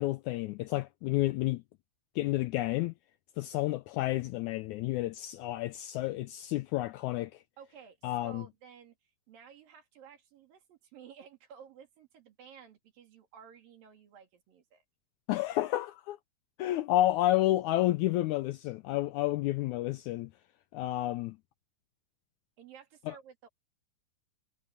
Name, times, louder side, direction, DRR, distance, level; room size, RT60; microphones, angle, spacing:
voice 1, 0.0-1.6 2.2-2.9 3.4-7.3 8.0-8.4 15.3-16.2 16.6-20.3 20.7-21.4 23.1-23.2, left 15 dB, 80° left, 1.7 m, -30 dB
voice 2, 7.6-14.8 22.6-23.5, right 8 dB, 85° right, 4.5 m, -54 dB
omnidirectional pair, 3.9 m